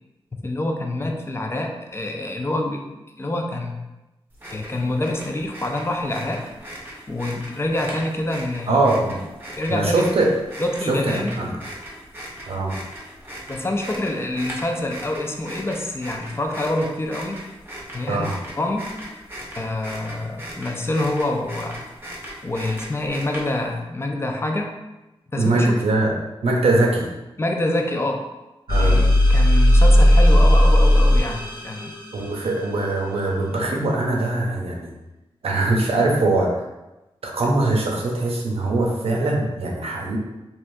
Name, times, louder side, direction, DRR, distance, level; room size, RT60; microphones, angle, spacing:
voice 1, 0.4-2.8 3.2-3.7 4.5-6.5 7.1-8.9 9.6-10.0 10.6-11.4 13.5-17.4 17.9-18.9 19.6-21.8 22.4-24.7 25.3-25.7 27.4-28.2 28.8-31.9, left 1 dB, 25° left, 2 dB, 0.4 m, -26 dB
sound 1, 4.3-23.8, equal, 20° right, 0.8 m, -38 dB
voice 2, 8.7-9.2 9.7-10.3 10.9-11.5 12.5-12.8 18.1-18.3 25.4-26.1 26.4-27.1 28.7-29.0 32.1-34.9 35.4-36.5 37.2-40.2, right 2 dB, 80° right, -1 dB, 0.6 m, -21 dB
sound 2, 28.7-32.3, left 1 dB, 45° left, 0.8 m, -15 dB
3.2 x 2.4 x 2.6 m, 1.0 s
wide cardioid pair, 80°, 10 cm